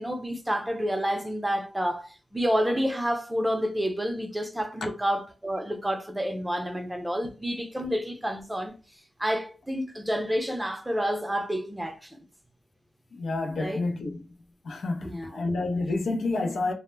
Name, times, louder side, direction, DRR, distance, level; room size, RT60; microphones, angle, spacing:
voice 1, 0.0-8.7 9.2-12.2 13.6-13.9 15.0-15.4, equal, 10° right, 0.5 m, -29 dB
voice 2, 13.1-14.3 14.6-16.7, left 3 dB, 85° left, 0.5 m, -29 dB
2.1 x 2.0 x 3.1 m
cardioid pair, 70°, 0 cm